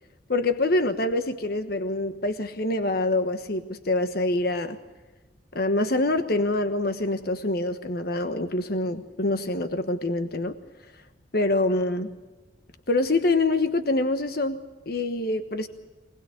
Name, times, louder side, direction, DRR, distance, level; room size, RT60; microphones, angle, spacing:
voice 1, 0.3-4.8 5.5-10.5 11.3-12.1 12.9-14.6 14.9-15.7, left 2 dB, 60° left, 9 dB, 1.2 m, -25 dB
25.0 x 19.0 x 8.9 m, 1.2 s
head